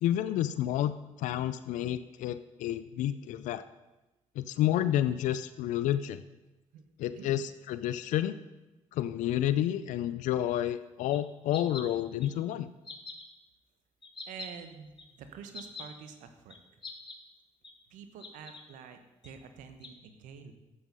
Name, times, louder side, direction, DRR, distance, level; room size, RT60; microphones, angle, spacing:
voice 1, 0.0-0.9 1.2-3.6 4.4-6.2 7.0-8.4 8.9-12.7, left 12 dB, 80° left, 13 dB, 0.4 m, -30 dB
voice 2, 6.7-7.4 14.3-16.6 17.9-20.5, right 7 dB, 80° right, 8 dB, 1.1 m, -48 dB
sound 1, 11.1-11.2 11.5-11.8 12.2-12.3 12.8-13.2 14.0-14.5 15.0-15.1 15.5-15.9 16.5-16.6 16.8-17.2 17.6-17.7 18.2-18.6 19.2-19.3 19.8-19.9, left 4 dB, 40° left, 1.7 m, -43 dB
11.0 x 8.1 x 5.4 m, 1.0 s
supercardioid pair, 60°, 13 cm